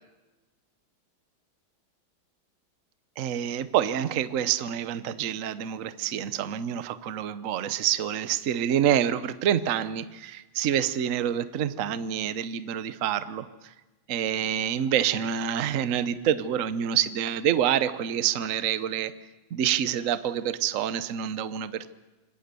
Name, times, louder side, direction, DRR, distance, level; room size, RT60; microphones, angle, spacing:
voice 1, 3.2-13.7 14.1-19.1 19.5-21.9, right 9 dB, 55° right, 13 dB, 1.0 m, -27 dB
26.0 x 21.0 x 6.8 m, 1.1 s
omnidirectional pair, 2.2 m